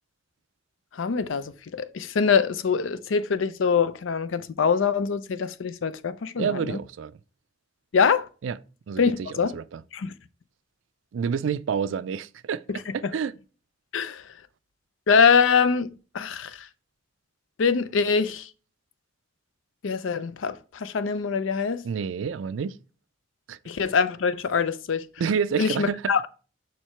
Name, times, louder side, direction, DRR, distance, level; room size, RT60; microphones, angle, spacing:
voice 1, 0.9-6.8 7.9-8.3 9.0-9.5 9.9-10.1 13.0-13.1 13.9-14.2 15.1-16.7 17.6-18.5 19.8-21.9 23.7-25.1 25.6-26.2, left 5 dB, 85° left, 0.5 m, -24 dB
voice 2, 6.4-7.1 8.4-8.6 8.9-9.8 11.1-12.6 12.9-13.3 21.8-22.8 23.5-23.6 25.2-26.1, right 6 dB, 80° right, 0.4 m, -28 dB
5.8 x 4.6 x 4.4 m
head